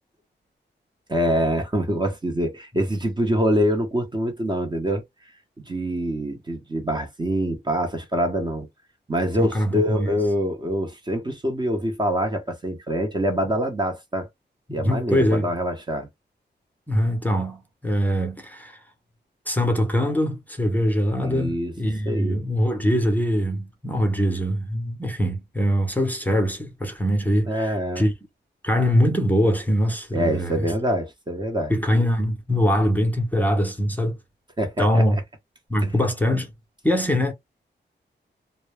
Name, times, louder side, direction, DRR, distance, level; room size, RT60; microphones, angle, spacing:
voice 1, 1.1-5.0 5.7-8.7 9.1-14.3 14.7-16.1 21.2-21.7 22.1-22.4 27.5-28.0 30.1-31.7 34.6-35.0, equal, 25° right, 0.8 m, -25 dB
voice 2, 9.4-10.1 14.7-15.5 16.9-18.8 19.5-28.1 28.6-30.7 31.7-34.2 34.8-35.2 35.7-36.5 36.8-37.3, equal, 10° left, 0.7 m, -23 dB
2.2 x 2.0 x 3.2 m
wide cardioid pair, 95°, 19 cm